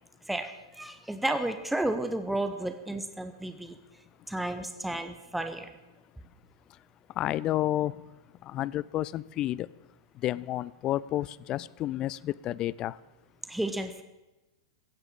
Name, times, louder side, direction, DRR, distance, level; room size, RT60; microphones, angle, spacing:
voice 1, 0.3-3.7 4.3-5.7 13.5-14.0, right 1 dB, 5° right, 1.0 m, -32 dB
voice 2, 7.2-8.0 8.5-9.7 10.2-13.0, left 14 dB, 30° left, 0.4 m, -30 dB
16.0 x 8.0 x 7.3 m
figure-of-eight pair, 100°, 2 cm